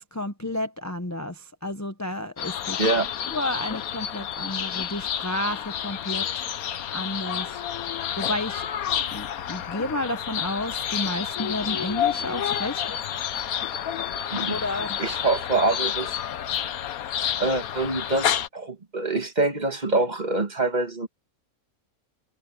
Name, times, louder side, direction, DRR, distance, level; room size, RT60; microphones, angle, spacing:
voice 1, 0.0-2.8 3.3-6.3 6.5-7.5 8.2-8.7 9.1-13.0 14.5-15.0, left 1 dB, 15° left, 0.7 m, -31 dB
sound 1, 2.4-18.5, left 9 dB, 85° left, 1.4 m, -29 dB
voice 2, 2.8-3.1 14.3-14.5 15.0-16.1 17.4-21.1, right 2 dB, 30° right, 1.6 m, -25 dB
omnidirectional pair, 1.5 m